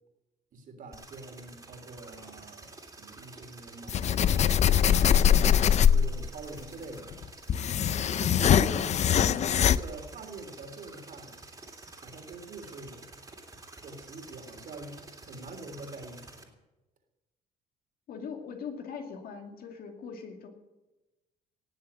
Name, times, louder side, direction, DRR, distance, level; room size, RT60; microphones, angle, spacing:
voice 1, 0.5-4.3 5.3-7.2 8.2-11.4 11.9-13.1 13.8-16.5, right 3 dB, 55° right, 5 dB, 3.2 m, -44 dB
sound 1, 0.9-16.4, right 3 dB, 20° right, 3.1 m, -49 dB
sound 2, 3.9-6.3 7.1-9.8, left 9 dB, 40° left, 0.5 m, -22 dB
voice 2, 18.1-20.5, left 6 dB, 60° left, 4 dB, 2.5 m, -41 dB
18.5 x 7.3 x 8.7 m, 1.1 s
cardioid pair, 110°, 17 cm